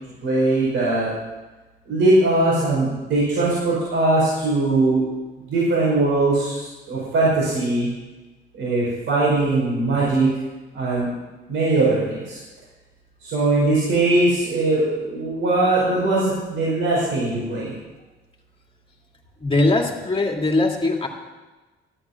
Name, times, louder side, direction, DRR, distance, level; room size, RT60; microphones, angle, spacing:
voice 1, 0.2-1.1 1.9-5.0 5.5-7.9 8.5-10.3 10.7-11.1 11.5-12.4 13.2-17.7, right 2 dB, 80° right, -7 dB, 5.2 m, -20 dB
voice 2, 19.4-21.1, left 2 dB, 25° left, 1 dB, 2.3 m, -20 dB
14.5 x 8.6 x 6.0 m, 1.2 s
cardioid pair, 90°, 20 cm